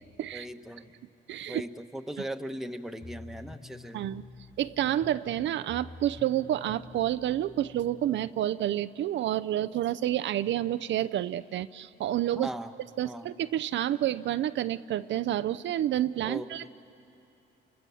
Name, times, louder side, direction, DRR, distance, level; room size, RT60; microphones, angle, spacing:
voice 1, 0.3-0.9 1.5-4.0 12.3-12.7 13.0-13.3 16.2-16.7, right 1 dB, ahead, 6 dB, 1.2 m, -38 dB
voice 2, 1.3-1.6 3.9-4.2 4.6-12.5 13.0-16.7, right 12 dB, 65° right, 13 dB, 0.5 m, -29 dB
sound 1, 3.0-8.3, left 3 dB, 30° left, 3.6 m, -48 dB
29.5 x 24.0 x 7.1 m, 2.8 s
cardioid pair, 90°, 20 cm